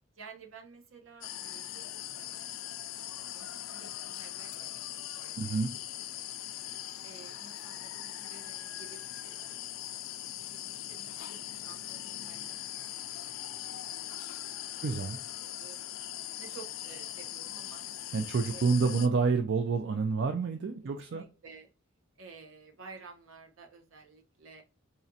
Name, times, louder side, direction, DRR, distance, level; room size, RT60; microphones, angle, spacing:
voice 1, 0.1-2.7 3.3-4.9 5.2-6.8 7.0-10.0 10.5-13.1 13.5-14.6 15.1-15.8 16.4-17.8 18.5-18.6 21.0-21.7 22.2-24.6, right 5 dB, 75° right, 2 dB, 0.9 m, -53 dB
sound 1, 1.2-19.1, left 12 dB, 75° left, 0.4 m, -41 dB
voice 2, 5.4-5.7 14.8-15.2 18.1-21.2, right 4 dB, 55° right, 5 dB, 0.4 m, -28 dB
4.1 x 2.4 x 2.6 m, 0.32 s
head